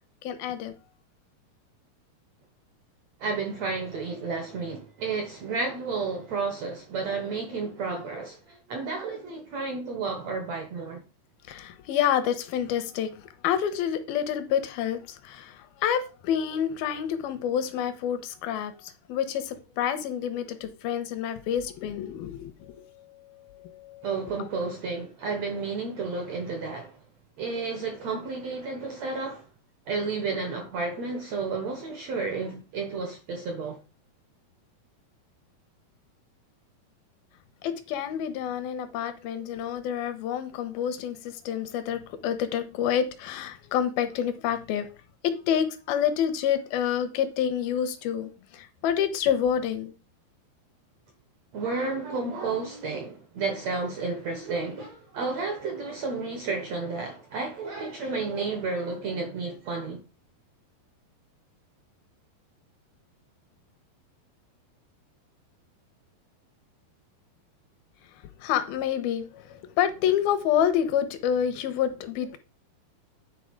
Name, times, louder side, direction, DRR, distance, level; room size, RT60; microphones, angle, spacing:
voice 1, 0.2-0.7 11.5-24.1 24.4-24.5 37.6-44.9 45.2-49.9 68.4-72.4, left 9 dB, 80° left, 2.5 m, -28 dB
voice 2, 3.2-11.0 24.0-27.0 27.4-29.5 29.9-33.8 51.5-60.0, right 4 dB, 70° right, 1.6 m, -31 dB
9.9 x 3.9 x 5.1 m
omnidirectional pair, 4.6 m